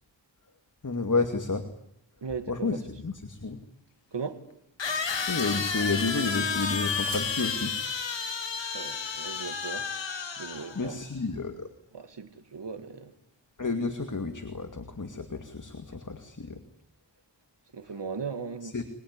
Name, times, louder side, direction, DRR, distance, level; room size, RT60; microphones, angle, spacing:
sound 1, 0.7-1.7 2.3-2.4 2.9-3.4 4.1-4.5 4.8-5.6 5.9-6.4 6.7-7.4 7.8-7.9, left 3 dB, 60° left, 4.3 m, -49 dB
voice 1, 0.8-1.7 2.5-3.6 5.3-7.8 10.7-11.7 13.6-16.6 18.6-18.8, left 3 dB, 45° left, 2.4 m, -31 dB
voice 2, 2.2-2.8 4.1-4.4 8.7-9.9 10.2-11.0 11.9-13.1 17.7-18.8, right 5 dB, 70° right, 2.4 m, -37 dB
sound 2, 3.2-3.3 4.8-10.9, left 5 dB, 80° left, 2.2 m, -31 dB
25.5 x 21.0 x 9.8 m
cardioid pair, 55°, 43 cm